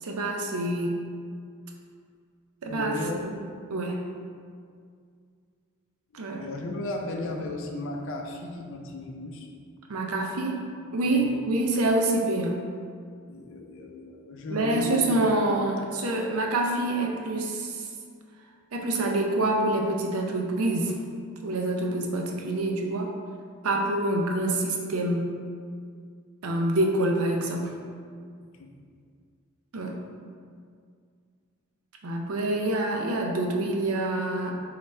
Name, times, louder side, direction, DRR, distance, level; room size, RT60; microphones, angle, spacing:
voice 1, 0.0-1.0 2.6-3.4 3.7-4.0 6.1-6.5 9.9-10.6 10.9-12.6 14.5-17.9 18.7-21.0 21.4-23.1 23.6-25.3 26.4-27.7 29.7-30.0 32.0-34.5, right 2 dB, 75° right, 1 dB, 0.6 m, -26 dB
voice 2, 2.7-3.3 6.1-9.5 11.1-11.4 13.3-15.3 28.6-28.7, left 2 dB, 60° left, 2 dB, 0.5 m, -35 dB
4.0 x 3.2 x 3.3 m, 2.1 s
head